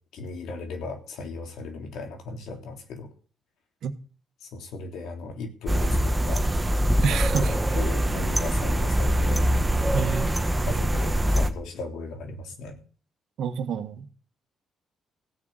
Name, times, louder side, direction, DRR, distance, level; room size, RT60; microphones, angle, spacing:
voice 1, 0.1-3.1 4.4-6.4 7.4-9.4 10.7-12.8, left 3 dB, 80° left, 3.4 m, -37 dB
sound 1, 5.7-11.5, right 1 dB, 15° right, 1.6 m, -23 dB
voice 2, 7.0-7.6 9.9-10.4 13.4-14.1, right 6 dB, 70° right, 1.7 m, -28 dB
16.0 x 6.3 x 9.2 m
cardioid pair, 90°, 0 cm